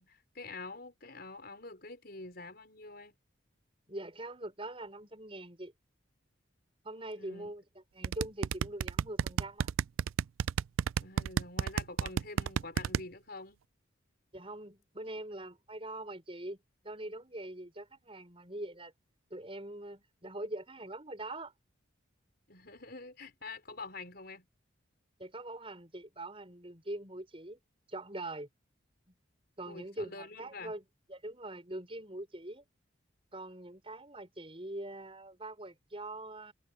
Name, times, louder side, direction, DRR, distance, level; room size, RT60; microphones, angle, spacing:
voice 1, 0.0-3.1 7.1-7.5 11.0-13.6 22.5-24.5 29.7-30.7, left 3 dB, 50° left, 5.2 m, -46 dB
voice 2, 3.9-5.7 6.8-7.6 7.9-9.7 14.3-18.9 19.3-21.5 25.2-27.6 27.9-28.5 29.1-29.2 29.6-30.8 31.1-32.6 33.3-36.5, right 1 dB, 30° right, 5.7 m, -43 dB
sound 1, 8.0-13.0, right 7 dB, 85° right, 0.4 m, -30 dB
head